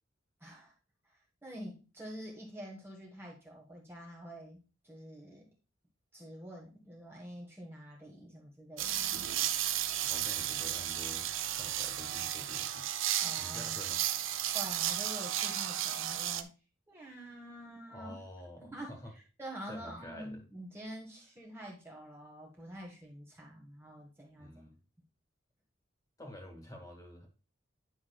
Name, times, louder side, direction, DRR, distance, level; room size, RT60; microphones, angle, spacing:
voice 1, 0.4-0.7 1.0-5.5 6.1-9.3 13.2-14.0 14.5-16.5 16.9-18.2 18.6-24.6, equal, 10° right, -2 dB, 1.4 m, -47 dB
sound 1, 8.8-16.4, right 11 dB, 75° right, 0.6 m, -34 dB
voice 2, 10.0-12.9 13.4-14.0 17.9-19.1 19.7-20.4 24.4-24.8 26.2-27.3, left 1 dB, 15° left, 2 dB, 2.0 m, -48 dB
9.7 x 5.9 x 2.3 m, 0.32 s
head